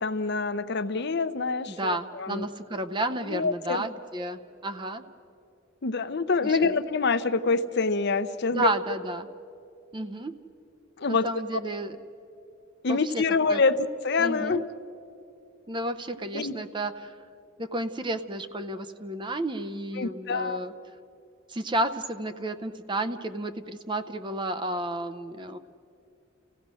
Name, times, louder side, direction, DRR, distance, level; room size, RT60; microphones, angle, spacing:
voice 1, 0.0-2.5 3.3-3.8 5.8-8.7 11.0-11.3 11.5-11.6 12.8-14.6 16.3-16.5 20.0-20.7, left 4 dB, 55° left, 11 dB, 0.7 m, -26 dB
voice 2, 1.7-5.1 6.4-6.7 8.5-9.3 9.9-10.3 11.1-12.0 12.9-13.6 14.2-14.6 15.7-17.2 17.6-20.7 21.5-25.6, right 1 dB, 25° right, 10 dB, 0.6 m, -32 dB
29.5 x 16.0 x 6.2 m, 2.6 s
head